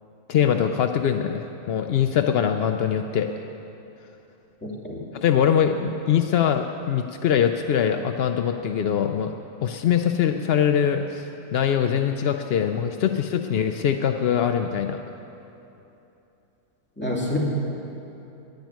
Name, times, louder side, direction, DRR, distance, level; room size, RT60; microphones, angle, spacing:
voice 1, 0.3-3.3 5.1-9.3 9.6-15.0, left 8 dB, 75° left, 6 dB, 0.5 m, -23 dB
voice 2, 4.6-5.1 17.0-17.4, left 2 dB, 5° left, -4 dB, 2.4 m, -28 dB
10.5 x 10.5 x 9.3 m, 2.9 s
omnidirectional pair, 1.6 m